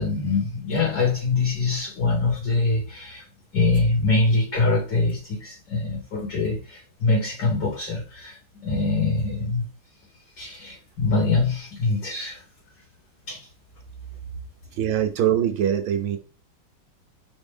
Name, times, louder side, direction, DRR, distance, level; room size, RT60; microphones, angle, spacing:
voice 1, 0.0-3.2 3.5-9.6 10.4-12.4 13.3-13.5, left 3 dB, 55° left, 2.6 m, -24 dB
voice 2, 14.7-16.2, right 10 dB, 80° right, 1.5 m, -23 dB
4.8 x 3.1 x 3.5 m
omnidirectional pair, 2.2 m